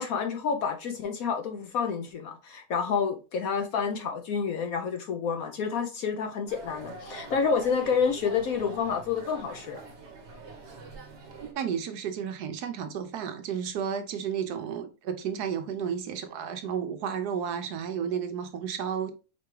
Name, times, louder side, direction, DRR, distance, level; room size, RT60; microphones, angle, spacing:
voice 1, 0.0-9.8, left 6 dB, 65° left, 1.0 m, -29 dB
sound 1, 6.5-11.5, right 3 dB, 45° right, 1.2 m, -44 dB
voice 2, 11.4-19.1, right 7 dB, 70° right, 1.1 m, -32 dB
4.9 x 3.4 x 3.1 m
omnidirectional pair, 1.9 m